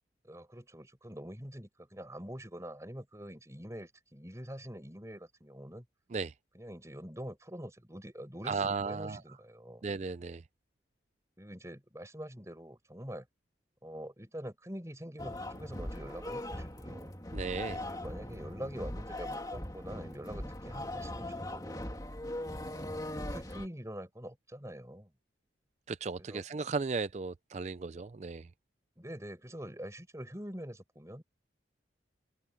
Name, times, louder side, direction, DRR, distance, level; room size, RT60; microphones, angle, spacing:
voice 1, 0.2-5.9 6.5-9.9 11.4-13.3 13.8-17.1 17.9-21.8 22.7-25.1 26.2-26.4 29.0-31.2, equal, 15° right, 5.5 m, -45 dB
voice 2, 8.4-9.2 9.8-10.4 17.3-17.8 25.9-28.5, right 4 dB, 35° right, 0.4 m, -35 dB
sound 1, 15.2-23.7, left 1 dB, 20° left, 2.8 m, -40 dB
open air
head